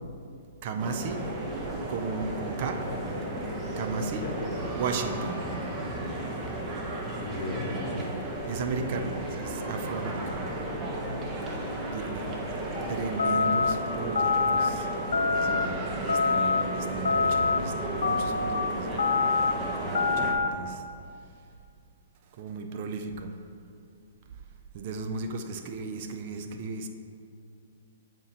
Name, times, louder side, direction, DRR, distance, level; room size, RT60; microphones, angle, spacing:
voice 1, 0.6-1.2 1.9-2.8 3.8-4.5 4.7-5.5 8.5-10.5 11.9-12.3 12.9-14.9 15.3-19.1 19.4-20.8 22.3-23.3 24.7-26.9, right 4 dB, 45° right, 6 dB, 0.5 m, -35 dB
sound 1, 0.8-20.3, right 1 dB, 20° right, 0.9 m, -34 dB
voice 2, 2.9-3.4 4.2-4.5 6.9-8.1 10.2-10.4 10.9-11.4 11.8-12.0 12.4-12.5, left 2 dB, 45° left, 1 dB, 0.9 m, -37 dB
sound 2, 13.2-13.7 14.1-14.7 15.1-15.7 16.1-16.6 17.0-17.6 18.0-18.5 19.0-19.5 19.9-20.5, left 4 dB, 75° left, 0.3 m, -25 dB
8.7 x 4.3 x 2.9 m, 2.4 s
hypercardioid pair, 125°, 0 cm